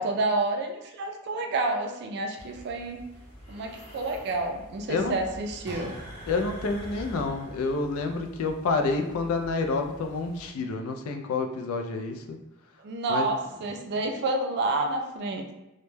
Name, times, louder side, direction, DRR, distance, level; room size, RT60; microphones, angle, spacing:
voice 1, 0.0-3.0 3.5-6.0 12.8-15.5, right 2 dB, 50° right, 4 dB, 0.3 m, -29 dB
sound 1, 2.4-10.5, equal, 30° left, 0.7 m, -46 dB
sound 2, 5.6-6.9 7.7-7.8, left 1 dB, 15° right, 0.9 m, -44 dB
voice 2, 6.3-12.4 13.1-13.3, left 3 dB, 70° left, 5 dB, 0.3 m, -28 dB
2.1 x 2.0 x 3.1 m, 0.97 s
head